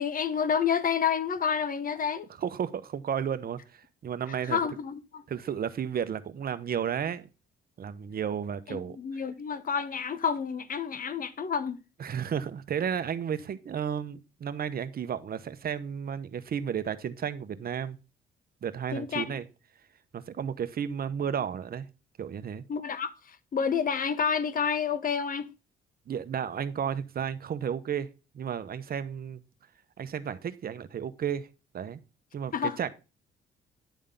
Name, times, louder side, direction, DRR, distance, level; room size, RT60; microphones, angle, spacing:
voice 1, 0.0-2.3 4.5-5.2 8.7-11.8 18.9-19.2 22.7-25.5 32.5-32.8, left 7 dB, 45° left, 1.0 m, -29 dB
voice 2, 2.4-4.6 5.3-7.3 7.8-9.0 12.0-18.0 18.6-19.4 20.1-21.9 22.2-22.6 26.1-28.1 28.3-29.4 30.0-31.5 31.7-32.0 32.3-32.9, right 8 dB, 50° right, 0.9 m, -33 dB
10.0 x 3.6 x 5.3 m
cardioid pair, 90°, 20 cm